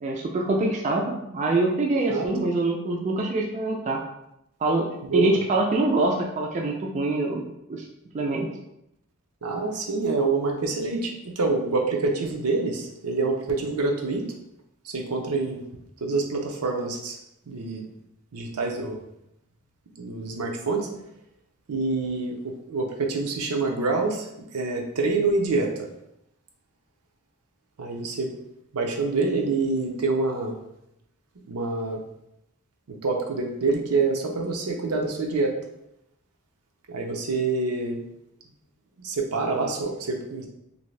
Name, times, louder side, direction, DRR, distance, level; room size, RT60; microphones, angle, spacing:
voice 1, 0.0-4.0 4.6-4.9 5.1-7.8 8.1-8.5, right 2 dB, 30° right, 0 dB, 0.3 m, -25 dB
voice 2, 5.1-5.4 9.4-14.3 14.8-15.6 16.0-17.2 17.5-17.9 18.3-19.0 20.0-20.9 21.7-25.9 27.8-28.3 28.7-30.6 31.5-32.0 32.9-35.5 36.9-38.0 39.0-40.5, right 3 dB, 75° right, 1 dB, 0.6 m, -26 dB
2.7 x 2.6 x 3.2 m, 0.82 s
head